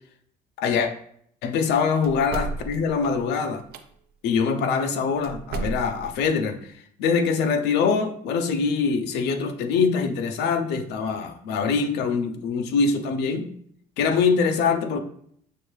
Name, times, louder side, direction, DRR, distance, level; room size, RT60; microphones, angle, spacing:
voice 1, 0.6-0.9 1.4-3.6 4.2-6.6 7.0-13.5 14.0-15.0, left 5 dB, 85° left, 7 dB, 0.6 m, -23 dB
sound 1, 2.0-3.8 5.2-6.2, right 4 dB, 65° right, 0.5 m, -33 dB
6.4 x 2.6 x 3.1 m, 0.66 s
cardioid pair, 110°, 17 cm